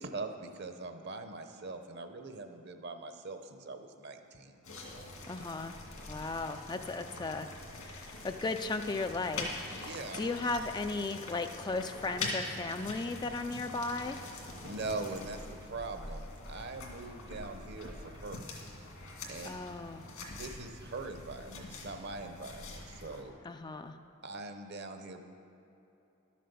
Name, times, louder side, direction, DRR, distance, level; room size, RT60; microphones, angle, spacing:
voice 1, 0.0-4.7 9.7-10.2 14.6-18.5 19.3-19.5 20.3-23.3 24.2-25.2, right 3 dB, 50° right, 7 dB, 0.9 m, -42 dB
sound 1, 4.6-23.2, left 2 dB, 75° left, 2.1 m, -44 dB
voice 2, 5.3-5.8 6.1-14.2 19.4-20.1 23.4-24.0, left 3 dB, 20° left, 7 dB, 0.3 m, -36 dB
12.0 x 7.5 x 6.9 m, 2.9 s
head